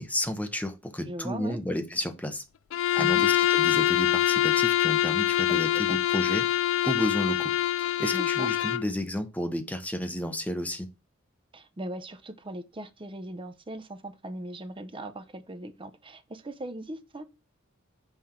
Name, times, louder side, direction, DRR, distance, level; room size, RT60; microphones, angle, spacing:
voice 1, 0.0-2.4 2.9-6.5 6.8-7.5 8.0-10.9, left 1 dB, 10° left, 0.9 m, -31 dB
voice 2, 1.0-1.6 2.9-3.3 5.5-6.0 8.1-8.5 11.5-17.3, right 1 dB, 25° right, 0.7 m, -39 dB
Bowed string instrument, 2.7-8.9, left 12 dB, 70° left, 0.3 m, -24 dB
5.7 x 3.4 x 5.8 m
head